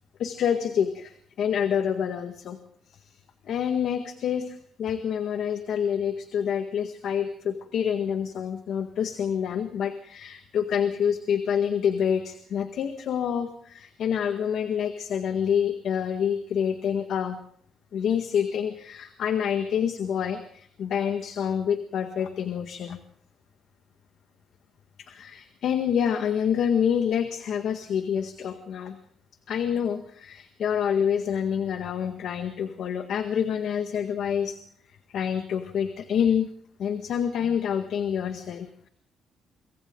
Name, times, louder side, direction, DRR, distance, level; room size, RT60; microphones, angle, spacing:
voice 1, 0.2-2.6 2.9-3.0 3.4-17.4 17.9-23.0 25.0-29.0 29.5-34.6 35.1-36.5 36.8-38.9, left 8 dB, 70° left, 7 dB, 1.7 m, -27 dB
27.5 x 24.5 x 3.9 m, 0.63 s
cardioid pair, 90°, 0 cm